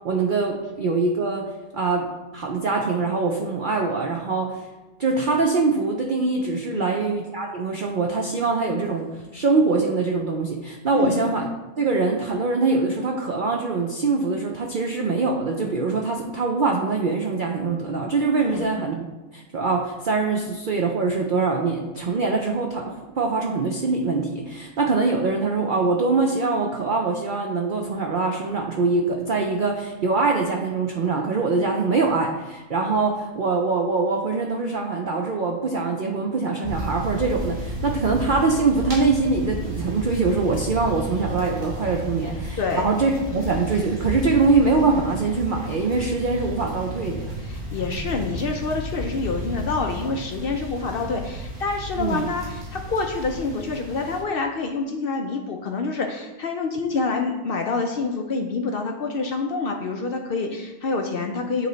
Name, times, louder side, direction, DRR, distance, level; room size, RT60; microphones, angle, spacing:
voice 1, 0.0-1.5 1.7-2.1 2.3-4.5 5.0-9.1 9.3-11.5 11.8-19.0 19.3-47.3 52.0-52.2, right 4 dB, 70° right, 1 dB, 0.4 m, -23 dB
voice 2, 6.7-7.0 10.9-11.3 18.5-18.6 42.6-42.9 47.4-61.7, left 4 dB, 70° left, 3 dB, 0.5 m, -27 dB
sound 1, 36.6-54.2, equal, 45° right, 2.5 m, -33 dB
9.4 x 3.1 x 3.9 m, 1.1 s
omnidirectional pair, 1.6 m